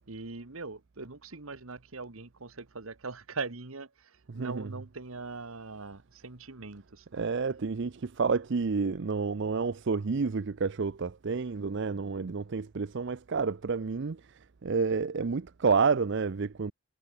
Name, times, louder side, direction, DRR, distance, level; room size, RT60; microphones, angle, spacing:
voice 1, 0.1-7.0, right 3 dB, 70° right, 1.5 m, -41 dB
voice 2, 4.3-4.7 7.1-16.7, right 5 dB, 55° right, 0.5 m, -29 dB
head